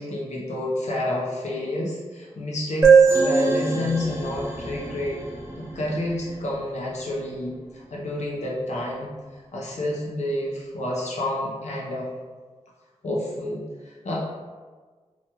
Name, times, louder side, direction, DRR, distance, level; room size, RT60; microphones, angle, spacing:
voice 1, 0.0-5.2 5.6-9.1 9.5-12.1 13.0-14.2, left 1 dB, 75° left, -4 dB, 0.7 m, -29 dB
sound 1, 2.8-6.4, right 5 dB, 20° right, 0.5 m, -21 dB
2.9 x 2.3 x 2.9 m, 1.4 s
wide cardioid pair, 75°, 12 cm